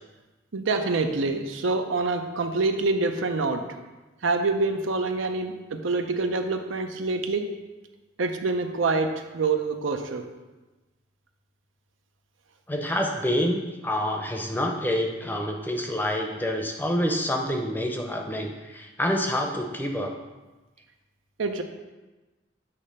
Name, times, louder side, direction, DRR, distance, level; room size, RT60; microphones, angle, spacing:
voice 1, 0.5-3.6 4.2-7.5 8.2-10.2 21.4-21.6, right 3 dB, 85° right, 6 dB, 0.6 m, -26 dB
voice 2, 12.7-20.1, equal, 10° left, 3 dB, 0.6 m, -27 dB
8.2 x 3.2 x 5.3 m, 1.2 s
head